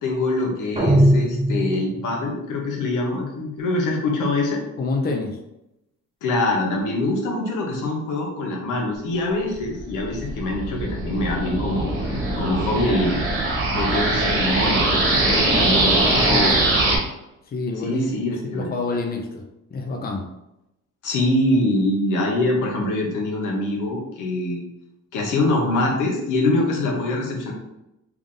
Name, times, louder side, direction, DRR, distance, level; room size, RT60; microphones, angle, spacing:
voice 1, 0.0-4.6 6.2-13.2 13.7-16.6 17.8-18.7 21.0-24.6 25.1-27.5, left 2 dB, 85° left, 0 dB, 1.1 m, -24 dB
sound 1, 0.8-2.2, equal, 20° right, 0.9 m, -19 dB
voice 2, 4.8-5.4 16.0-16.7 17.5-19.4 19.7-20.3, left 3 dB, 30° left, 2 dB, 0.6 m, -28 dB
sound 2, 9.6-17.0, right 2 dB, 45° right, 1.4 m, -22 dB
3.5 x 2.5 x 3.7 m, 0.89 s
cardioid pair, 90°, 30 cm